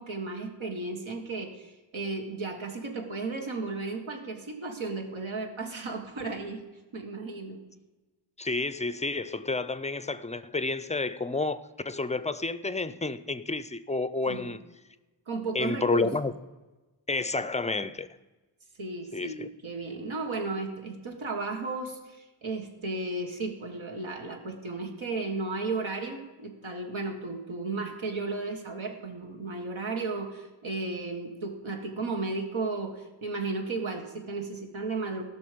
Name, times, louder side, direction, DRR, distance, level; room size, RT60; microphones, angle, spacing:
voice 1, 0.0-6.7 6.9-7.6 14.3-14.5 15.3-16.1 18.8-35.2, right 3 dB, 75° right, 1.7 m, -34 dB
voice 2, 8.4-14.6 15.5-16.3 17.1-18.1 19.1-19.5, left 3 dB, 15° left, 0.5 m, -30 dB
17.5 x 6.2 x 5.2 m
wide cardioid pair, 95°, 48 cm